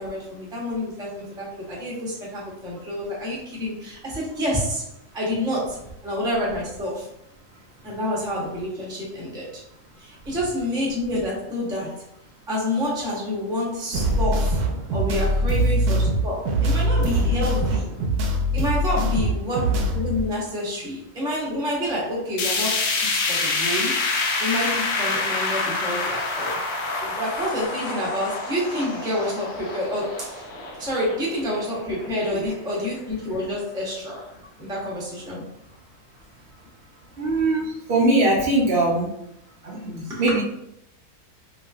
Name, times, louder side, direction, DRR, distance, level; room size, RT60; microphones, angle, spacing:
voice 1, 0.0-4.9 5.1-7.1 7.8-9.6 10.0-12.1 12.5-14.6 14.9-17.9 18.5-24.0 24.4-26.6 27.0-30.5 30.8-34.3 34.6-35.5 40.2-40.4, left 1 dB, 5° right, -5 dB, 0.5 m, -28 dB
sound 1, 13.9-20.2, right 1 dB, 90° right, 1.1 m, -22 dB
sound 2, 22.4-32.5 32.9-33.0 33.4-33.5 34.4-34.5, left 3 dB, 65° left, 0.9 m, -27 dB
voice 2, 37.2-39.1 39.6-40.4, right 2 dB, 65° right, -3 dB, 0.5 m, -21 dB
3.2 x 2.9 x 2.3 m, 0.77 s
omnidirectional pair, 1.6 m